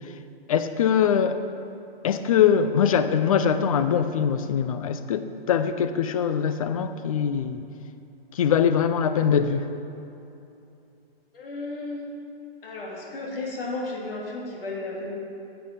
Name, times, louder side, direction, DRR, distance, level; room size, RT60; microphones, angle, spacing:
voice 1, 0.5-1.4 2.0-7.6 8.3-9.7, left 8 dB, 35° left, 10 dB, 0.4 m, -22 dB
voice 2, 11.3-12.0 12.6-15.2, left 2 dB, 65° left, -2 dB, 2.5 m, -33 dB
9.6 x 7.8 x 5.1 m, 2.8 s
hypercardioid pair, 150°, 31 cm